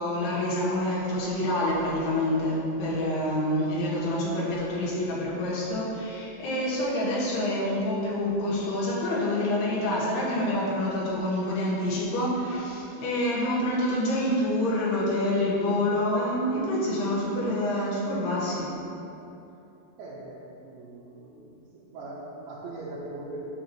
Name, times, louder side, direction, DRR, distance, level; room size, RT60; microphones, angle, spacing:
voice 1, 0.0-18.7, left 1 dB, 70° left, -7 dB, 3.4 m, -27 dB
voice 2, 20.0-21.5 21.7-23.5, right 2 dB, 85° right, -7 dB, 3.2 m, -40 dB
9.3 x 7.0 x 3.0 m, 2.8 s
omnidirectional pair, 5.1 m